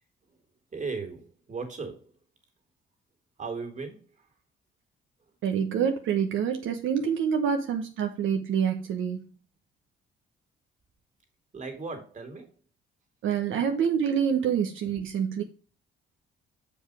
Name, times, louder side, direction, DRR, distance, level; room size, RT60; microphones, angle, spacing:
voice 1, 0.7-2.1 3.4-4.3 11.5-12.5 14.5-14.7, right 4 dB, 35° right, 2.7 m, -37 dB
voice 2, 5.4-9.2 13.2-15.4, right 7 dB, 80° right, 1.1 m, -26 dB
7.1 x 5.4 x 4.8 m
cardioid pair, 90°, 20 cm